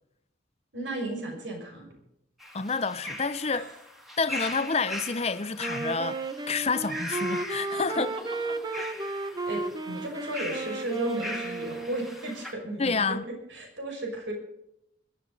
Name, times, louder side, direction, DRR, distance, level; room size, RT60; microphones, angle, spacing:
voice 1, 0.7-2.0 3.5-3.7 8.7-9.2 9.5-13.2 13.5-14.3, right 1 dB, 80° right, 5.9 m, -35 dB
sound 1, 2.4-12.5, left 1 dB, ahead, 2.0 m, -40 dB
voice 2, 2.5-3.6 4.2-6.2 6.5-8.1 8.8-9.2 12.8-13.2, left 4 dB, 35° left, 0.7 m, -29 dB
Wind instrument woodwind instrument, 5.6-12.3, right 2 dB, 20° right, 0.8 m, -34 dB
21.0 x 13.5 x 4.1 m
head